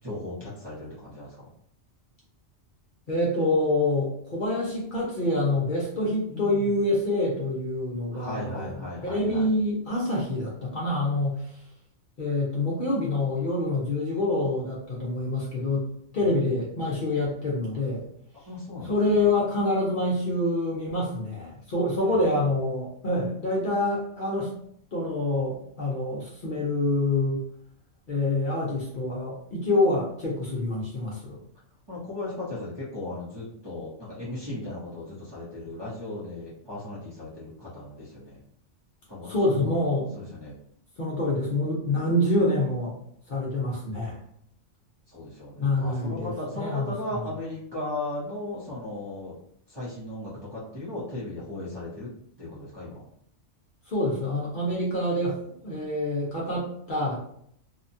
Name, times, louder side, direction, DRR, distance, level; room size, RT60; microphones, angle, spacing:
voice 1, 0.0-1.5 6.3-6.7 8.1-9.5 16.2-16.6 18.3-19.2 22.1-22.3 31.9-38.4 39.1-39.7 40.1-40.5 45.1-49.4 49.7-52.1 52.4-53.1, left 2 dB, 25° right, -9 dB, 0.8 m, -37 dB
voice 2, 3.1-11.4 12.2-15.9 16.1-18.0 18.8-24.5 24.9-27.4 28.1-31.4 39.3-40.1 41.0-42.9 43.3-44.2 45.6-46.9 53.9-57.2, left 2 dB, 50° left, -5 dB, 0.8 m, -26 dB
2.8 x 2.2 x 2.6 m, 0.68 s
omnidirectional pair, 1.2 m